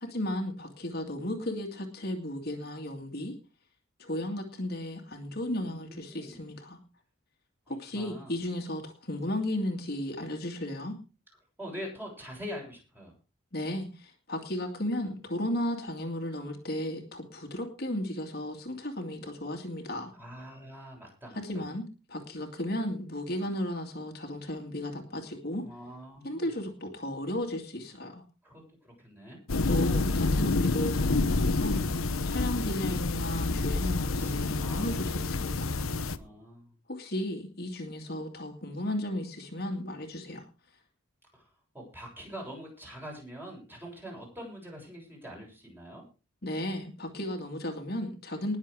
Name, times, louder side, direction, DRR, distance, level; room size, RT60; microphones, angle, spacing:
voice 1, 0.0-3.3 4.0-6.8 7.7-11.0 13.5-20.1 21.4-25.6 26.2-28.2 29.7-31.8 32.3-35.8 36.9-40.5 46.4-48.6, left 1 dB, 50° left, 3 dB, 2.4 m, -34 dB
voice 2, 5.5-6.4 7.7-8.3 11.6-13.1 20.1-21.6 25.6-26.5 28.4-29.4 34.1-35.4 35.9-36.7 41.3-41.5 41.7-46.0, equal, 10° right, -1 dB, 7.0 m, -44 dB
sound 1, 29.5-36.2, left 3 dB, 75° left, 1.0 m, -28 dB
20.0 x 7.4 x 5.0 m, 0.32 s
head